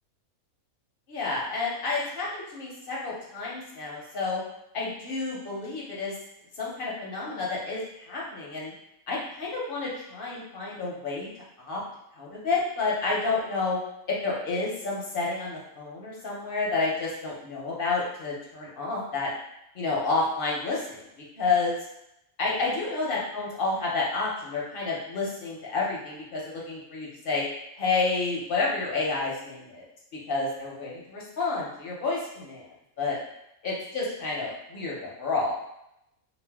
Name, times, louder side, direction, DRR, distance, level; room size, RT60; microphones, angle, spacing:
voice 1, 1.1-4.4 4.7-6.1 6.6-8.7 9.1-11.3 11.6-11.8 12.2-13.8 14.2-19.3 19.7-21.0 21.4-21.8 22.4-27.4 27.8-29.9 30.3-32.6 33.0-33.2 33.6-35.5, left 3 dB, 55° left, -4 dB, 0.7 m, -30 dB
2.5 x 2.1 x 3.4 m, 0.82 s
omnidirectional pair, 1.5 m